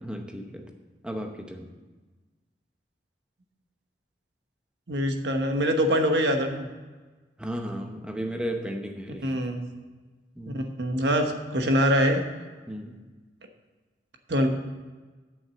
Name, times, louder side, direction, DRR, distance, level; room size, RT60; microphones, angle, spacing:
voice 1, 0.0-0.7 1.0-1.7 7.4-9.3 10.4-10.7 12.7-13.0, equal, 5° right, 4 dB, 0.8 m, -34 dB
voice 2, 4.9-6.7 9.2-9.7 10.5-12.2 14.3-14.5, equal, 80° right, 4 dB, 1.1 m, -24 dB
8.0 x 6.1 x 7.6 m, 1.3 s
head